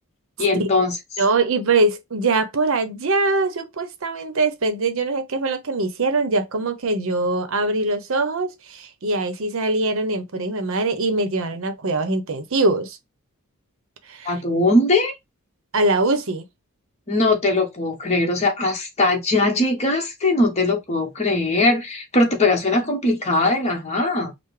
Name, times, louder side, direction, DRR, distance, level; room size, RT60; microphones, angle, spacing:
voice 1, 0.4-1.0 14.2-15.1 17.1-24.3, left 2 dB, 30° left, 1.0 m, -20 dB
voice 2, 1.2-13.0 14.1-14.3 15.7-16.4, right 2 dB, 60° right, 0.7 m, -22 dB
5.6 x 2.1 x 3.2 m
head